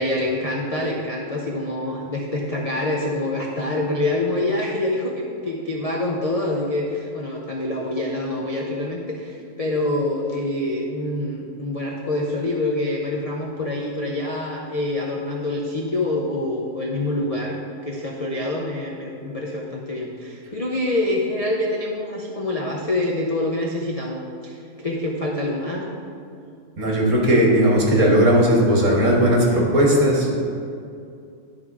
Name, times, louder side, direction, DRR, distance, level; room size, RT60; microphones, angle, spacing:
voice 1, 0.0-25.9, left 1 dB, 45° left, -2 dB, 0.5 m, -26 dB
voice 2, 26.8-30.3, equal, 55° right, -3 dB, 1.8 m, -17 dB
11.0 x 3.9 x 4.8 m, 2.4 s
omnidirectional pair, 1.6 m